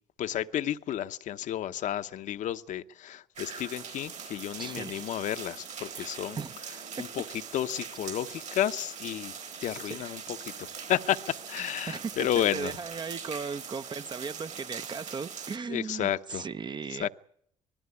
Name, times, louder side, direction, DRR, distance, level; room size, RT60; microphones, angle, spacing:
voice 1, 0.2-6.4 7.0-7.2 7.5-12.8 15.7-16.5 16.9-17.1, left 11 dB, 65° left, 0.8 m, -32 dB
sound 1, 3.4-15.6, right 7 dB, 55° right, 3.5 m, -42 dB
voice 2, 4.6-5.1 6.0-6.6 11.9-12.1 12.5-17.1, right 5 dB, 35° right, 0.8 m, -37 dB
20.0 x 15.5 x 9.7 m
supercardioid pair, 80°, 14 cm